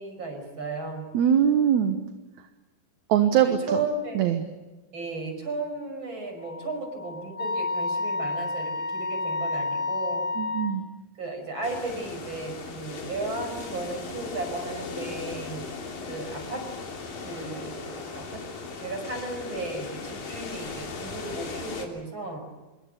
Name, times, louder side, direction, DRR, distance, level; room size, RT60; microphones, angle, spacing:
voice 1, 0.0-1.2 3.4-4.3 4.9-10.2 11.2-15.7 16.1-16.7 17.2-18.4 18.8-22.4, right 3 dB, 35° right, 6 dB, 6.4 m, -35 dB
voice 2, 1.1-2.0 3.1-3.8 4.2-4.4 10.4-10.8, right 9 dB, 65° right, 7 dB, 2.2 m, -22 dB
Wind instrument woodwind instrument, 6.4-10.7, left 3 dB, 15° left, 2.4 m, -30 dB
sound 1, 11.6-21.9, left 4 dB, 75° left, 5.1 m, -38 dB
26.0 x 23.5 x 8.2 m, 1.1 s
omnidirectional pair, 4.1 m